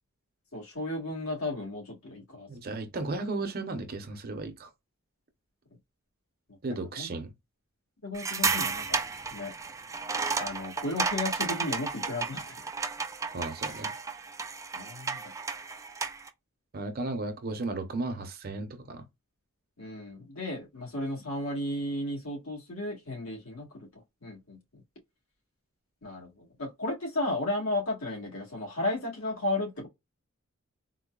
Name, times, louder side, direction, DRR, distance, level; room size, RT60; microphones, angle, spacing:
voice 1, 0.5-2.5 6.7-7.1 8.0-9.0 9.3-9.5 10.4-12.5 13.6-13.8 14.7-15.3 19.8-23.9 24.2-24.6 26.0-29.9, left 2 dB, 85° left, 1.6 m, -34 dB
voice 2, 2.5-4.7 6.6-7.3 13.3-13.9 16.7-19.1, right 2 dB, 45° right, 0.7 m, -35 dB
sound 1, 8.1-16.3, right 4 dB, 15° right, 0.3 m, -33 dB
3.9 x 2.2 x 2.3 m
head